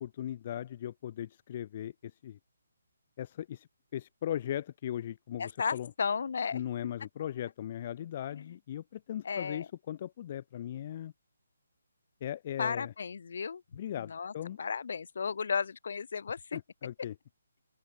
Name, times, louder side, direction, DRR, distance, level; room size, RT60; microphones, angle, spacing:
voice 1, 0.0-2.4 3.2-3.7 3.9-5.9 6.5-11.1 12.2-12.9 13.7-14.6 16.5-17.1, left 11 dB, 40° left, 2.2 m, -38 dB
voice 2, 5.4-6.6 8.3-8.5 9.2-9.7 12.6-13.6 14.0-16.6, left 5 dB, 55° left, 4.7 m, -34 dB
open air
figure-of-eight pair, 145°, 0 cm